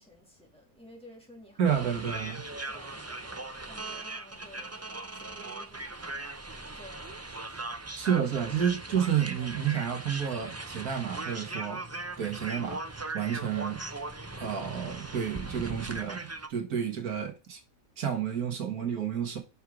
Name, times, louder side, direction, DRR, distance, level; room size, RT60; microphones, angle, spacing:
voice 1, 0.0-4.7 5.1-6.2 6.7-7.8, equal, 5° left, 2.9 m, -54 dB
sound 1, 1.6-16.5, right 2 dB, 20° right, 0.4 m, -39 dB
voice 2, 1.6-2.4 7.9-11.8 12.2-13.8 14.4-17.6 18.0-19.4, right 8 dB, 85° right, 2.0 m, -30 dB
6.1 x 5.4 x 5.0 m
omnidirectional pair, 1.5 m